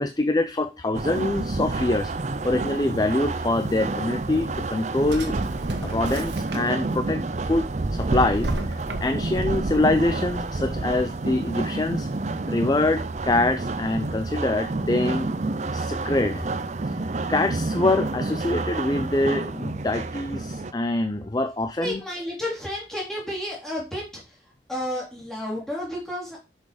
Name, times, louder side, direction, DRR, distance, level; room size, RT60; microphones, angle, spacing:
voice 1, 0.0-2.1 2.4-5.4 5.8-12.1 12.5-15.3 15.7-16.5 16.9-17.0 17.3-22.0, left 2 dB, 20° left, 9 dB, 0.5 m, -25 dB
sound 1, 0.9-20.7, right 2 dB, 40° right, 0.5 m, -29 dB
Drawer open or close, 4.4-7.0 7.4-9.4, right 2 dB, 85° right, 1.6 m, -36 dB
voice 2, 21.8-26.4, left 1 dB, 5° left, -4 dB, 3.4 m, -32 dB
6.7 x 6.5 x 5.0 m, 0.28 s
head